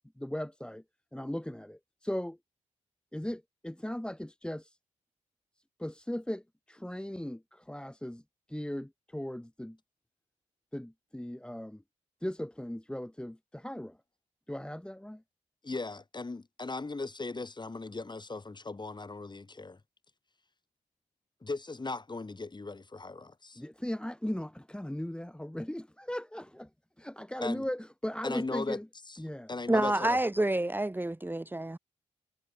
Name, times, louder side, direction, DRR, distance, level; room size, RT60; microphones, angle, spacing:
voice 1, 0.2-0.8 1.1-2.4 3.1-4.8 5.8-8.2 8.5-9.8 10.7-11.8 12.2-14.0 14.5-15.2 23.6-26.7 27.0-28.9 29.2-29.5, left 1 dB, 5° left, 1.6 m, -37 dB
voice 2, 15.6-19.8 21.4-23.6 27.4-27.7 28.2-28.8 29.1-29.2 29.5-30.2, left 3 dB, 35° left, 6.4 m, -38 dB
voice 3, 29.7-31.8, right 1 dB, 15° right, 1.5 m, -28 dB
supercardioid pair, 45°, 14 cm